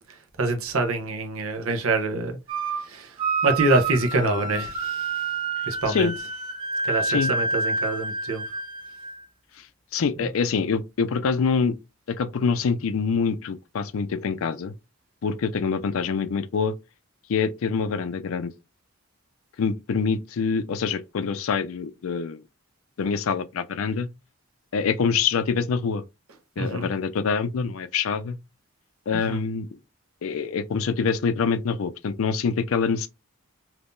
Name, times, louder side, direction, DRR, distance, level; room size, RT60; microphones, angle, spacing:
voice 1, 0.1-2.4 2.7-5.3 5.6-6.1 6.8-8.4 10.2-10.3 26.6-26.9 29.1-29.4, right 2 dB, 80° right, 0.8 m, -26 dB
sound 1, 2.5-2.9 3.2-9.2, right 3 dB, 25° right, 0.4 m, -28 dB
voice 2, 9.9-11.8 12.1-14.7 15.2-16.7 17.3-18.5 19.6-22.4 23.0-24.1 24.7-26.0 26.6-28.4 29.1-29.8 30.2-33.1, left 5 dB, 75° left, 0.4 m, -25 dB
3.6 x 2.8 x 2.5 m
head